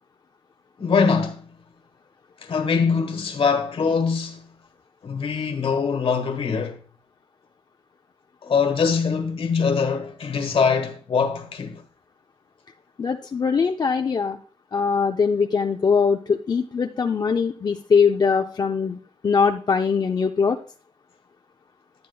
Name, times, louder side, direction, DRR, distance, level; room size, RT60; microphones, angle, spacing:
voice 1, 0.8-1.5 2.4-4.5 5.0-6.8 8.4-11.8, left 5 dB, 55° left, 1.3 m, -23 dB
voice 2, 13.0-14.4 14.7-19.0 19.2-20.6, left 5 dB, 40° left, 0.4 m, -21 dB
10.5 x 9.4 x 2.3 m
wide cardioid pair, 145°, 11 cm